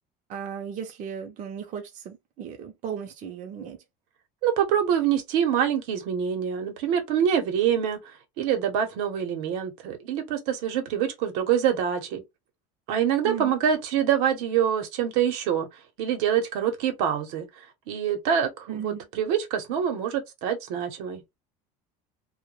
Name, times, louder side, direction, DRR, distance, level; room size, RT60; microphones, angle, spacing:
voice 1, 0.3-3.8 13.2-13.5 18.7-19.1, right 8 dB, 45° right, 0.6 m, -36 dB
voice 2, 4.4-8.0 8.4-12.2 12.9-15.7 16.0-17.5 17.9-21.2, right 9 dB, 75° right, 0.9 m, -25 dB
2.2 x 2.1 x 3.0 m
supercardioid pair, 125°, 18 cm